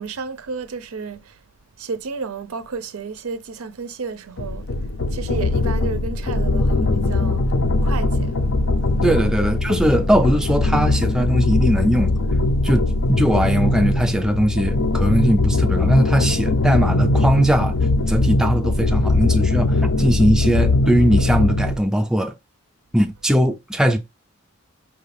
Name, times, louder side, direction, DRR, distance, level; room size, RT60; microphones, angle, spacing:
voice 1, 0.0-1.4 1.8-4.7 5.1-8.4, right 4 dB, 85° right, 0.6 m, -32 dB
sound 1, 4.4-21.8, left 2 dB, 60° left, 0.5 m, -20 dB
voice 2, 9.0-12.1 12.6-17.8 18.1-22.3 22.9-24.0, equal, 5° right, 0.3 m, -20 dB
5.5 x 2.4 x 3.3 m
head